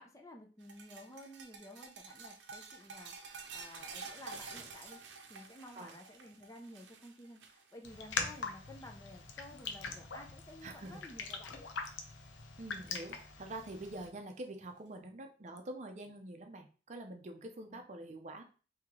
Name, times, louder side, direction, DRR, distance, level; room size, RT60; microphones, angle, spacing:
voice 1, 0.0-5.0 5.3-11.6 17.7-17.8, left 1 dB, 15° left, 3 dB, 0.4 m, -53 dB
sound 1, 0.6-9.1 9.4-9.8 10.2-11.0 12.4-12.5 13.8-13.9, right 4 dB, 75° right, 0.6 m, -50 dB
Raindrop, 7.8-14.1, left 5 dB, 90° left, 0.6 m, -42 dB
voice 2, 10.6-11.0 12.6-18.4, right 1 dB, 40° right, 5 dB, 0.5 m, -46 dB
3.1 x 2.8 x 3.6 m, 0.37 s
head